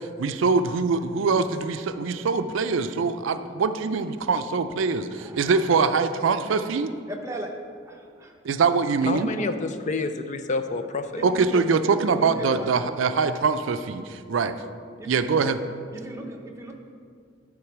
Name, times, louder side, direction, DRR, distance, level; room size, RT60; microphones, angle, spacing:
voice 1, 0.2-6.9 8.4-9.3 11.2-14.5 15.0-15.6, right 4 dB, 85° right, 10 dB, 0.4 m, -23 dB
voice 2, 5.1-5.7 6.3-6.6 7.1-8.4 9.1-9.7 11.1-11.7 12.2-13.4 15.0-15.1 15.9-16.7, right 1 dB, 15° right, 1 dB, 0.8 m, -38 dB
voice 3, 9.1-11.2, left 3 dB, 40° left, 9 dB, 0.4 m, -28 dB
11.0 x 3.8 x 5.9 m, 2.2 s
head